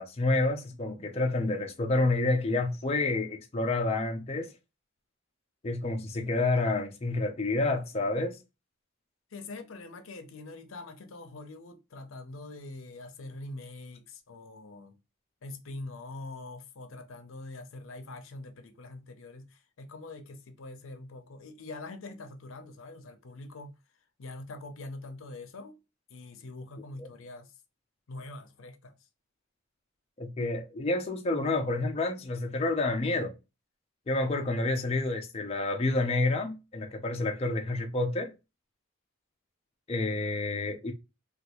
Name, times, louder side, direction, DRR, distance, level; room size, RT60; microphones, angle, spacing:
voice 1, 0.0-4.5 5.6-8.4 27.0-27.1 30.2-33.3 34.1-38.3 39.9-40.9, left 2 dB, 30° left, 0.5 m, -29 dB
voice 2, 9.3-15.0 15.4-23.8 24.2-25.8 26.1-27.5 28.1-28.9, left 2 dB, 75° left, 0.6 m, -44 dB
3.3 x 2.3 x 2.9 m
head